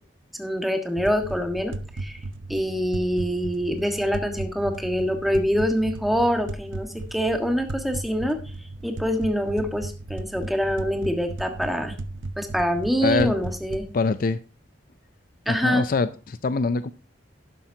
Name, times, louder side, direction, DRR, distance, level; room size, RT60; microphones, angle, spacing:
voice 1, 0.4-2.2 2.5-8.4 8.8-11.9 12.4-13.9 15.4-15.8, equal, ahead, 4 dB, 1.5 m, -25 dB
sound 1, 1.0-13.9, right 2 dB, 85° right, 0.7 m, -36 dB
voice 2, 13.0-13.3 13.9-14.4 15.5-16.9, left 4 dB, 50° left, 14 dB, 0.4 m, -24 dB
11.5 x 11.0 x 2.8 m, 0.36 s
head